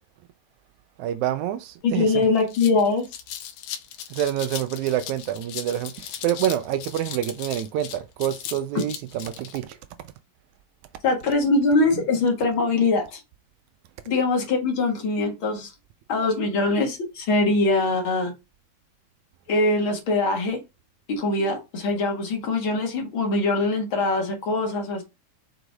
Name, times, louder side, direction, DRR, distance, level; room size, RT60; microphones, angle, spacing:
voice 1, 1.0-2.3 4.1-9.8, right 11 dB, 80° right, 1.8 m, -27 dB
sound 1, 1.8-1.9 2.2-9.6, left 10 dB, 80° left, 2.4 m, -37 dB
voice 2, 1.8-3.1 11.0-13.2 14.1-15.7 16.1-18.3 19.5-20.6 21.2-25.0, left 3 dB, 45° left, 2.2 m, -22 dB
6.3 x 5.0 x 3.5 m
omnidirectional pair, 3.7 m